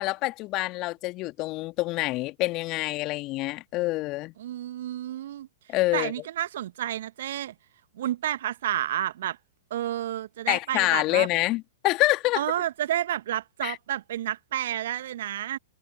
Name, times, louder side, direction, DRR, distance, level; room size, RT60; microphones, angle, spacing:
voice 1, 0.0-4.3 5.7-6.1 10.5-12.4 13.6-13.8, left 20 dB, 35° left, 2.3 m, -26 dB
voice 2, 4.4-5.5 5.9-7.5 8.0-9.4 9.7-11.3 12.4-15.6, right 12 dB, 55° right, 1.2 m, -30 dB
figure-of-eight pair, 105°, 0 cm